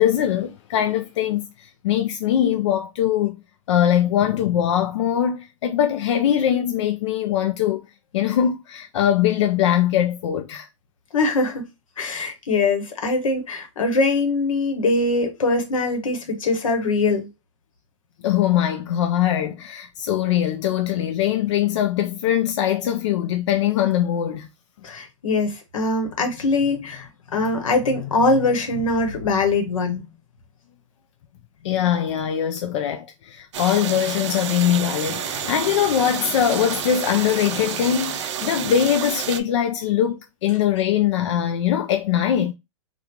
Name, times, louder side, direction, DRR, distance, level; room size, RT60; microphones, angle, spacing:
voice 1, 0.0-3.3 3.7-7.9 8.1-10.7 18.2-24.5 31.6-42.5, left 10 dB, 60° left, 0.4 m, -22 dB
voice 2, 11.1-11.6 12.0-17.3 24.8-30.0, left 3 dB, 90° left, 1.1 m, -22 dB
sound 1, 33.5-39.4, right 10 dB, 60° right, 0.4 m, -30 dB
3.6 x 2.3 x 2.9 m
hypercardioid pair, 150°, 17 cm